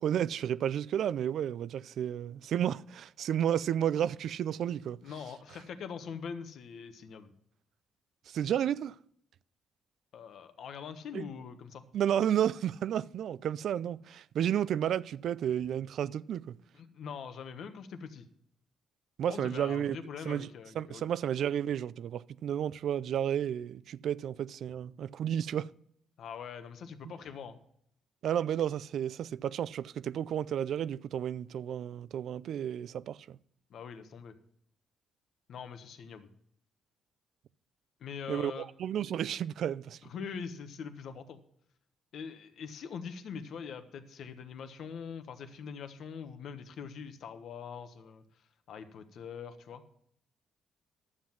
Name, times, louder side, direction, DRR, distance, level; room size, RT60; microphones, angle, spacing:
voice 1, 0.0-5.0 8.3-9.0 11.1-11.2 11.9-16.6 19.2-20.0 20.3-20.5 20.8-25.7 28.2-33.4 38.3-40.0, right 10 dB, 70° right, 0.4 m, -32 dB
voice 2, 5.0-7.3 10.1-11.8 16.7-18.2 19.3-21.1 26.2-27.6 33.7-34.3 35.5-36.3 38.0-38.7 40.0-41.4 42.1-48.2 48.7-49.8, left 6 dB, 70° left, 1.2 m, -43 dB
11.5 x 7.6 x 5.8 m
cardioid pair, 90°, 0 cm